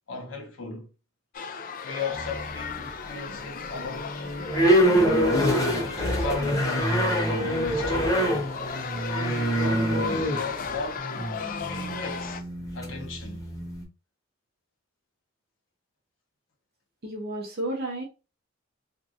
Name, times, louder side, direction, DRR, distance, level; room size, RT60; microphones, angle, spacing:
voice 1, 0.1-0.9 1.8-4.1 5.4-6.7 7.3-8.5 9.2-11.1 11.7-12.4 12.7-13.4, left 3 dB, 75° left, 0.8 m, -36 dB
sound 1, 1.3-12.4, left 6 dB, 45° left, 0.3 m, -36 dB
sound 2, 2.1-2.8 3.3-13.8, equal, 15° left, 0.8 m, -26 dB
voice 2, 17.0-18.0, right 1 dB, 50° right, 0.8 m, -32 dB
2.9 x 2.6 x 2.4 m
head